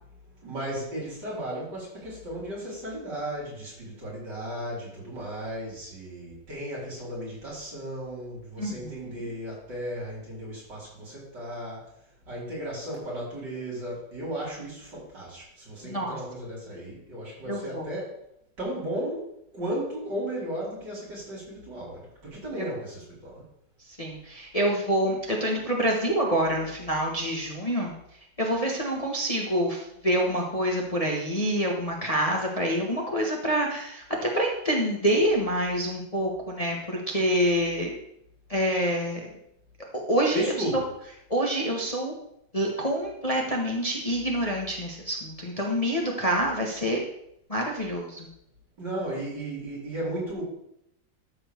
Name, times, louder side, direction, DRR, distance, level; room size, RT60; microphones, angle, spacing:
voice 1, 0.4-11.9 12.3-18.2 18.6-19.3 19.5-23.4 40.3-40.8 48.8-50.4, right 1 dB, 70° right, -6 dB, 5.3 m, -35 dB
voice 2, 8.6-8.9 9.2-9.3 15.8-16.2 17.5-17.8 22.5-22.6 24.0-27.9 28.4-37.9 38.5-39.2 40.1-40.8 41.3-42.1 42.5-47.0 47.5-48.3, equal, 20° left, -1 dB, 1.3 m, -26 dB
13.0 x 4.4 x 6.9 m, 0.77 s
omnidirectional pair, 2.0 m